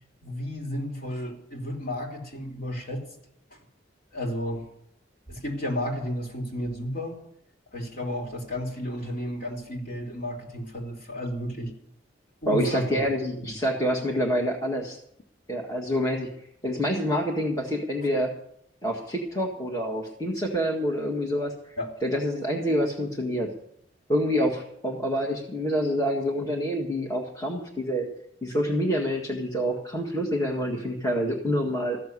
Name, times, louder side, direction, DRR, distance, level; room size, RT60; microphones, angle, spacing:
voice 1, 0.2-3.1 4.1-4.7 5.3-7.2 7.7-11.7 12.4-13.0 13.4-13.6 21.8-21.9, left 1 dB, 50° left, 0 dB, 3.4 m, -32 dB
voice 2, 12.5-15.0 15.5-16.3 16.6-18.3 18.8-21.5 22.0-23.5 24.1-28.1 28.4-32.0, equal, 20° left, -1 dB, 1.8 m, -27 dB
15.0 x 7.0 x 9.6 m, 0.73 s
head